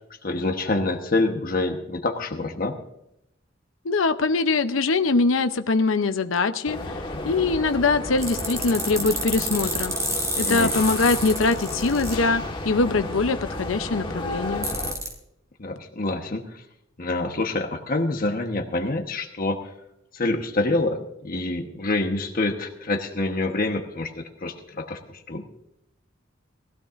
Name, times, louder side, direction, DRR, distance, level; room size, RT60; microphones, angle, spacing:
voice 1, 0.2-2.8 10.4-10.7 15.6-16.6 17.0-19.6 20.1-25.0 25.3-25.4, left 2 dB, 45° left, 4 dB, 1.2 m, -26 dB
voice 2, 3.8-9.9 10.4-14.7, left 3 dB, 90° left, 9 dB, 0.7 m, -23 dB
sound 1, 6.7-14.9, left 1 dB, 25° left, 1.5 m, -32 dB
sound 2, 8.2-12.2 14.6-15.1, right 1 dB, 15° right, 3.1 m, -29 dB
20.0 x 15.5 x 2.6 m, 0.81 s
head